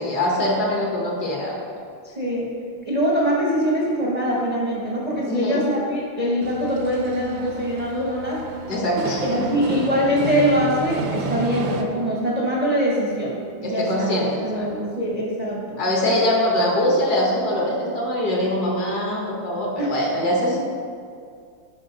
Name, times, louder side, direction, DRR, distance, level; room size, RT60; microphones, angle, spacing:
voice 1, 0.0-1.6 5.3-5.6 8.7-9.5 13.6-14.7 15.8-20.6, left 1 dB, 55° left, -2 dB, 1.7 m, -23 dB
voice 2, 2.0-2.5 2.8-8.4 9.2-15.8 19.8-19.9, equal, 30° right, -5 dB, 0.7 m, -23 dB
sound 1, 6.4-11.8, right 4 dB, 75° right, 1.3 m, -31 dB
11.5 x 4.3 x 4.0 m, 2.3 s
omnidirectional pair, 2.3 m